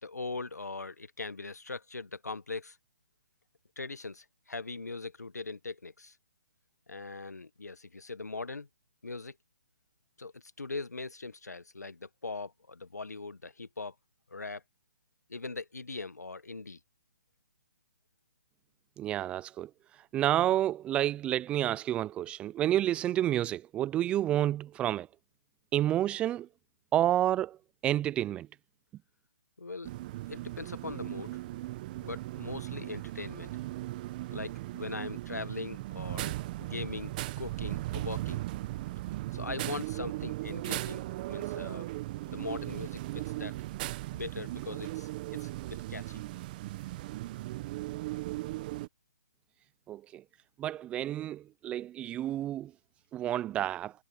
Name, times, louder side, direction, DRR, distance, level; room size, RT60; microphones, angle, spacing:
voice 1, 0.0-2.8 3.8-6.1 6.9-8.7 9.0-9.3 10.2-13.9 14.3-14.6 15.3-16.8 29.6-29.9 30.3-31.3 32.0-33.5 34.3-38.4 39.3-41.9 42.3-43.5 44.1-46.2, left 3 dB, 90° left, 1.5 m, -40 dB
voice 2, 19.0-19.7 20.1-25.1 25.7-26.5 26.9-27.6 27.8-28.5 49.9-50.2 50.6-52.7 53.1-53.9, right 12 dB, 15° right, 0.4 m, -29 dB
sound 1, 29.8-48.9, right 18 dB, 35° right, 1.3 m, -37 dB
figure-of-eight pair, 140°, 9 cm